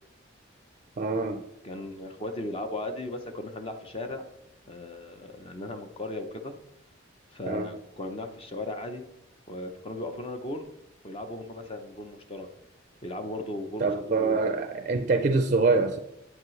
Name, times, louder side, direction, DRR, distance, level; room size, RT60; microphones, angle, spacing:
voice 1, 1.0-1.4 7.5-7.7 13.8-16.0, right 3 dB, 40° right, 0.4 m, -25 dB
voice 2, 1.6-4.3 4.7-6.5 7.3-9.0 9.5-10.7 11.0-12.5 13.0-13.8 14.2-14.4, left 1 dB, 30° left, 0.6 m, -36 dB
8.5 x 7.2 x 3.2 m
head